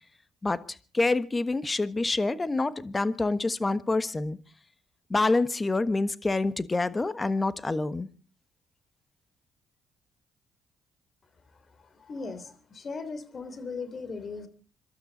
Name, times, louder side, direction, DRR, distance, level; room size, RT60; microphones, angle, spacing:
voice 1, 0.4-4.4 5.1-8.1, left 3 dB, 25° left, 1.4 m, -27 dB
voice 2, 11.5-14.5, left 4 dB, 45° left, 3.2 m, -38 dB
27.0 x 12.5 x 4.0 m
supercardioid pair, 65°, 0 cm